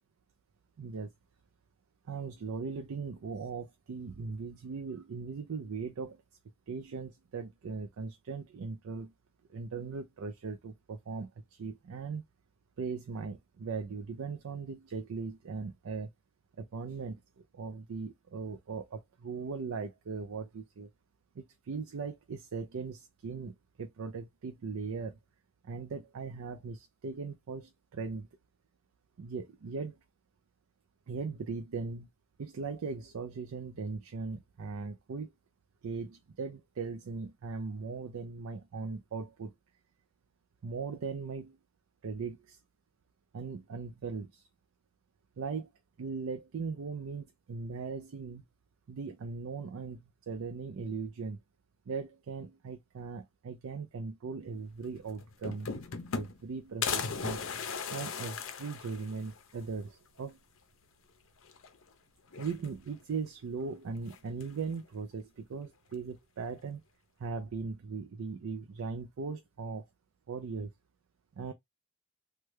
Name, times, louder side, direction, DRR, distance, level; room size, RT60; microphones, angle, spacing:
voice 1, 0.8-1.1 2.1-6.2 6.7-9.1 9.5-12.2 12.8-16.1 16.6-20.9 21.4-25.2 25.6-28.3 29.2-30.0 31.1-32.1 32.4-35.3 35.8-39.5 40.6-41.6 42.0-42.6 43.3-44.4 45.4-45.7 46.0-48.4 48.9-51.4 51.9-55.7 56.1-57.4 57.9-60.4 62.3-66.8 67.2-69.8 70.3-70.7 71.4-71.5, right 4 dB, 70° right, 0.4 m, -39 dB
sound 1, 54.8-54.9 55.2-56.5 56.8-59.4 59.8-59.9 60.2-60.3 61.4-61.9 62.3-63.0 64.1-64.6, left 6 dB, 60° left, 0.5 m, -37 dB
3.2 x 2.2 x 3.1 m
head